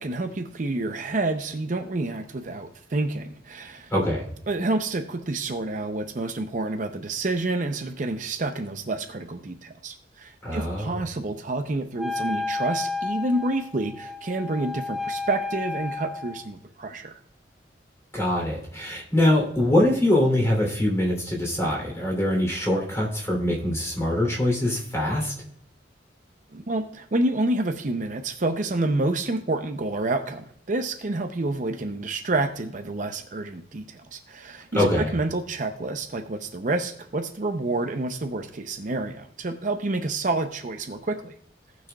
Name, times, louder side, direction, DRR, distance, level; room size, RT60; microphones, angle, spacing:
voice 1, 0.0-3.9 4.5-17.1 26.5-41.3, right 2 dB, 45° right, 6 dB, 0.6 m, -28 dB
voice 2, 3.9-4.2 10.4-11.0 18.1-25.3 34.7-35.1, left 1 dB, 15° left, -1 dB, 3.1 m, -23 dB
Wind instrument woodwind instrument, 12.0-16.5, left 3 dB, ahead, 0.7 m, -32 dB
18.0 x 6.2 x 2.3 m, 0.69 s
head